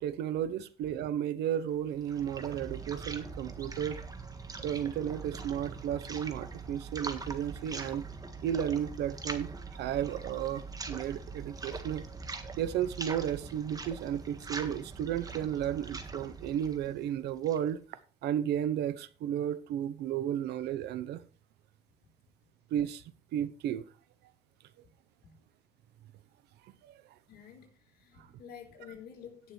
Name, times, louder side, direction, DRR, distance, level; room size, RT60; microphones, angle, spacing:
voice 1, 0.0-4.0 4.6-8.1 8.4-12.0 12.6-17.8 18.2-21.2 22.7-23.0 23.3-23.8 26.8-27.0 28.2-28.3, right 10 dB, 75° right, 0.9 m, -33 dB
sound 1, 1.7-17.7, right 4 dB, 20° right, 1.6 m, -42 dB
voice 2, 27.3-29.5, left 8 dB, 65° left, 4.4 m, -50 dB
17.5 x 6.7 x 3.3 m
cardioid pair, 110°, 17 cm